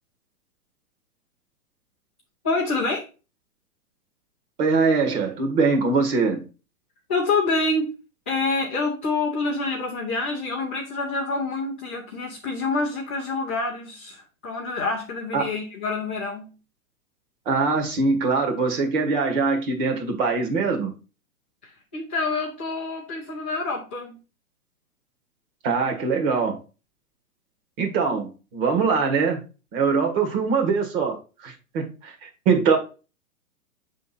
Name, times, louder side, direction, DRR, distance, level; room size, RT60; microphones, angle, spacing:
voice 1, 2.4-3.0 7.1-7.9 8.3-16.6 21.6-24.2, left 3 dB, 10° left, -10 dB, 0.3 m, -27 dB
voice 2, 4.6-6.4 15.3-15.4 17.4-20.9 25.6-26.6 27.8-29.4 29.7-31.2 31.4-32.8, right 4 dB, 35° right, 3 dB, 1.7 m, -22 dB
6.6 x 3.7 x 4.1 m, 0.32 s
hypercardioid pair, 140°, 45 cm